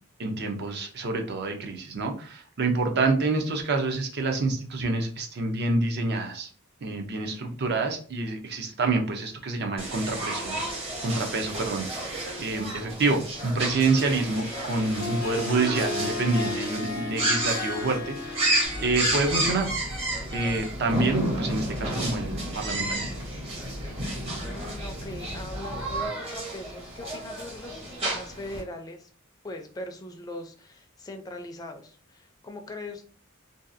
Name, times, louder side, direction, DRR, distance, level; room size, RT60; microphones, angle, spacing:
voice 1, 0.2-6.5 6.8-12.1 12.4-18.5 18.8-19.7 20.3-23.1, right 3 dB, 50° right, 4 dB, 0.5 m, -27 dB
sound 1, 9.8-28.6, right 2 dB, 30° right, 0.9 m, -32 dB
Harp, 13.9-19.7, left 3 dB, 75° left, 0.5 m, -35 dB
sound 2, 18.6-26.1, left 1 dB, 75° right, 1.4 m, -34 dB
voice 2, 24.5-29.1 29.4-33.1, left 1 dB, 20° left, 5 dB, 0.4 m, -40 dB
2.7 x 2.3 x 2.5 m, 0.42 s
head